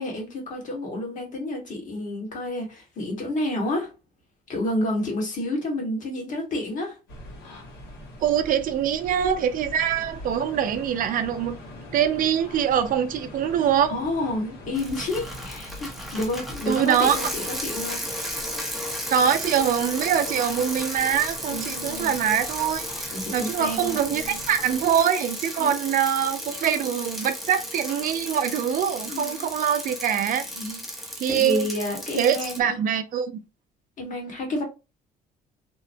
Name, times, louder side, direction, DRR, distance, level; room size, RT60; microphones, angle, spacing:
voice 1, 0.0-3.9 4.5-7.0 13.9-18.0 21.5-22.1 23.1-24.4 25.6-25.7 29.1-29.5 30.5-30.8 31.3-32.8 34.0-34.6, left 1 dB, 50° left, 1.4 m, -30 dB
sound 1, 7.1-25.0, left 1 dB, 80° left, 1.4 m, -43 dB
voice 2, 8.2-11.6 11.9-13.9 16.7-17.2 19.1-30.8 31.2-31.7 32.2-33.3, right 8 dB, 55° right, 0.4 m, -24 dB
Bicycle, 14.7-32.6, equal, ahead, 0.7 m, -34 dB
2.9 x 2.1 x 2.6 m
cardioid pair, 110°, 17 cm